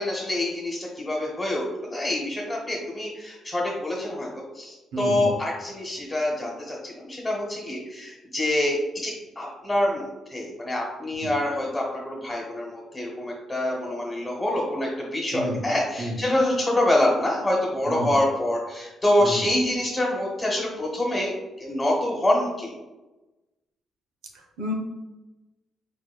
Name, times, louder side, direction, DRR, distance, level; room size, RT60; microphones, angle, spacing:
voice 1, 0.0-22.7, left 1 dB, 15° left, -3 dB, 1.1 m, -26 dB
voice 2, 4.9-5.3 11.2-11.3 15.3-15.6 16.0-16.2 17.9-18.1 19.2-19.4 24.6-24.7, equal, 90° right, 2 dB, 0.8 m, -30 dB
4.5 x 4.2 x 2.3 m, 1.1 s
cardioid pair, 90°, 0 cm